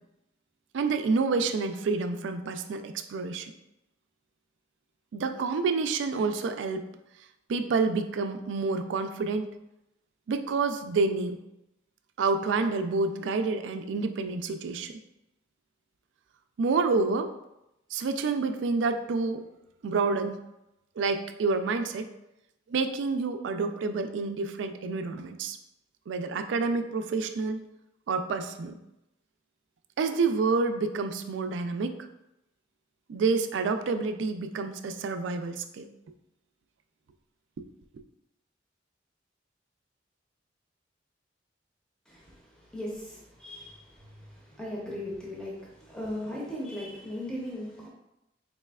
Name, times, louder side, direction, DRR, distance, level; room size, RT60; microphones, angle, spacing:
voice 1, 0.7-3.5 5.1-6.9 7.5-9.5 10.3-11.4 12.2-15.0 16.6-17.3 17.9-19.4 19.8-20.4 21.0-22.1 22.7-25.6 26.1-27.7 28.1-28.7 30.0-32.0 33.1-35.9, right 4 dB, 85° right, 8 dB, 0.3 m, -28 dB
voice 2, 42.1-47.9, left 1 dB, 5° left, -4 dB, 0.6 m, -38 dB
4.2 x 3.1 x 2.3 m, 0.88 s
head